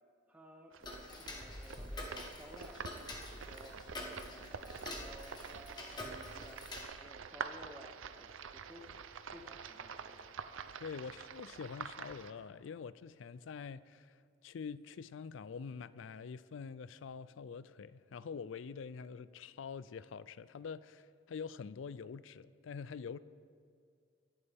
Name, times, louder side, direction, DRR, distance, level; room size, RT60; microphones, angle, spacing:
voice 1, 0.3-2.9 3.2-8.9 9.2-10.3, equal, 10° right, 0.8 m, -56 dB
sound 1, 0.7-12.3, right 6 dB, 90° right, 0.6 m, -47 dB
Tick-tock, 0.8-6.8, left 1 dB, 20° left, 1.3 m, -46 dB
voice 2, 10.8-14.2 14.4-23.2, left 6 dB, 80° left, 0.4 m, -45 dB
23.0 x 11.0 x 3.5 m
head